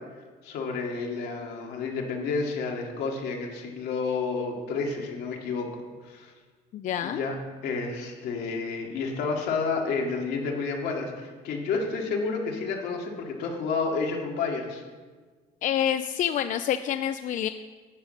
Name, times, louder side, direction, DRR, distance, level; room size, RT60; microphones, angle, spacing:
voice 1, 0.4-6.3 7.0-7.4 7.6-14.8, left 4 dB, 80° left, 1 dB, 2.0 m, -30 dB
voice 2, 6.7-7.2 15.6-17.5, left 10 dB, 50° left, 10 dB, 0.4 m, -27 dB
9.9 x 5.2 x 8.2 m, 1.4 s
cardioid pair, 110°, 17 cm